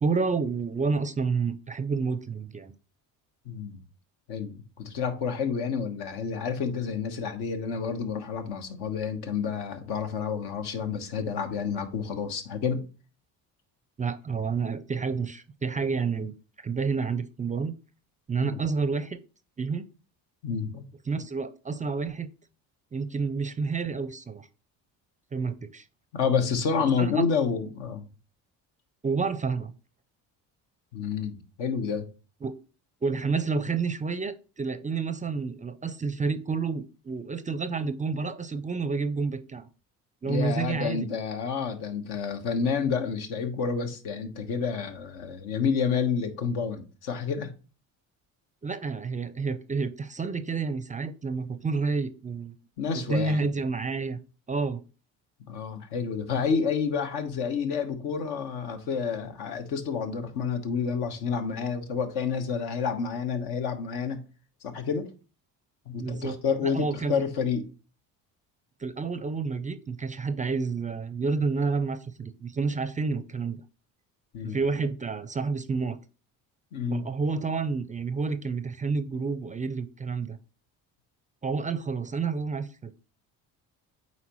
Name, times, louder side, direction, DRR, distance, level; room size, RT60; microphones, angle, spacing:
voice 1, 0.0-2.8 14.0-16.3 16.6-17.7 18.3-19.2 19.6-19.9 21.1-22.3 22.9-24.5 25.3-25.8 27.0-27.1 29.0-29.7 32.4-32.5 33.0-39.7 40.2-41.1 48.6-52.5 53.1-54.2 54.5-54.8 66.0-67.1 68.8-73.6 74.4-76.0 76.9-80.4 81.4-82.9, right 4 dB, 20° right, 0.4 m, -29 dB
voice 2, 3.4-3.8 4.3-12.8 18.4-18.6 20.4-20.9 26.1-28.1 30.9-32.1 40.2-47.5 52.8-53.5 55.5-64.2 64.6-65.1 65.9-67.7 74.3-74.6 76.7-77.0, left 6 dB, 80° left, 1.2 m, -29 dB
8.2 x 4.2 x 3.0 m
supercardioid pair, 80°, 39 cm